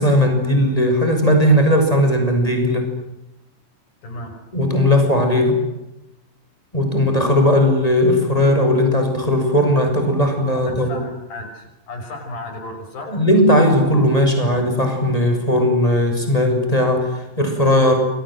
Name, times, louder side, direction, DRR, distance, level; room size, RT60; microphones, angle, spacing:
voice 1, 0.0-2.9 4.5-5.6 6.7-11.0 13.1-18.0, left 1 dB, 10° left, 4 dB, 7.2 m, -17 dB
voice 2, 4.0-4.3 10.7-13.2, left 2 dB, 75° left, 2 dB, 7.8 m, -34 dB
29.5 x 24.5 x 7.8 m, 0.93 s
omnidirectional pair, 4.1 m